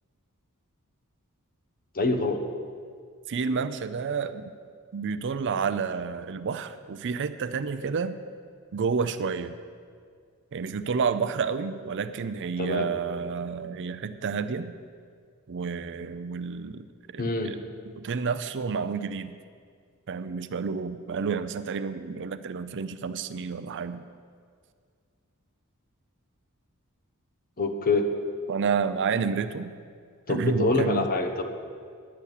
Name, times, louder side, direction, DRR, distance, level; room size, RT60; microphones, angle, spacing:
voice 1, 1.9-2.4 12.6-12.9 17.2-17.5 27.6-28.1 30.3-31.4, left 3 dB, 40° left, 6 dB, 1.0 m, -25 dB
voice 2, 3.3-4.5 4.9-8.2 8.7-9.6 10.5-14.7 15.5-17.6 17.9-19.3 20.1-24.1 28.5-29.7 30.3-31.1, right 5 dB, 55° right, 12 dB, 0.5 m, -30 dB
10.5 x 7.0 x 8.4 m, 2.1 s
head